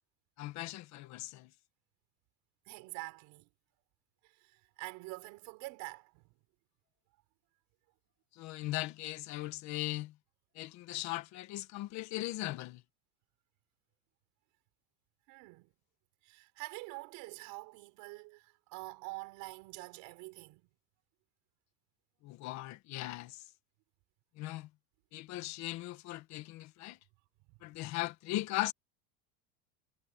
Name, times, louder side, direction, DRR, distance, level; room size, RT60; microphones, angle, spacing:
voice 1, 0.4-1.5 8.3-10.1 10.5-12.8 22.2-23.4 24.4-24.7 25.1-27.0 27.6-28.7, left 17 dB, 50° left, 1.5 m, -38 dB
voice 2, 2.7-3.5 4.2-6.4 15.3-15.7 16.2-20.7, right 25 dB, 60° right, 5.4 m, -46 dB
cardioid pair, 160°, 36 cm